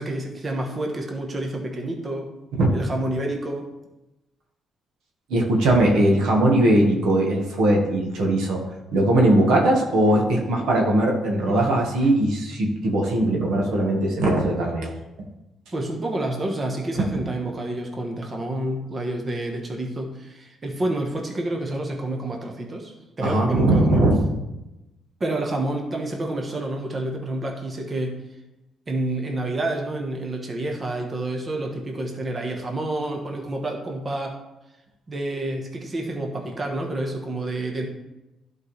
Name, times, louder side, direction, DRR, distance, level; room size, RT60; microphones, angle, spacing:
voice 1, 0.0-2.3 2.7-3.7 11.4-11.8 15.7-24.0 25.2-28.2 28.9-34.4 35.1-37.9, right 1 dB, 35° right, 2 dB, 1.2 m, -29 dB
voice 2, 5.3-8.6 8.9-14.9 16.9-17.0 23.2-24.2, right 1 dB, 80° right, 0 dB, 1.6 m, -20 dB
11.5 x 4.7 x 3.3 m, 0.97 s
cardioid pair, 90°, 0 cm